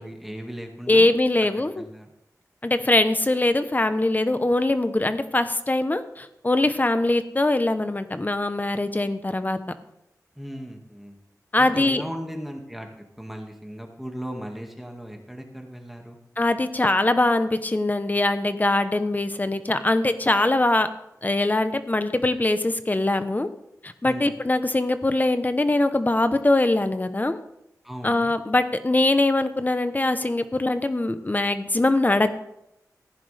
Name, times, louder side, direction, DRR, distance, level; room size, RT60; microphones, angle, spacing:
voice 1, 0.0-1.1 1.7-2.1 10.4-11.2 11.6-16.2 24.0-24.3 27.8-28.3, equal, 5° right, 2 dB, 2.0 m, -37 dB
voice 2, 0.9-1.8 2.6-9.6 11.5-12.0 16.4-20.9 21.2-23.5 23.8-27.4 28.0-32.4, left 2 dB, 25° left, 10 dB, 0.9 m, -22 dB
15.0 x 10.0 x 3.4 m, 0.82 s
wide cardioid pair, 65°, 6 cm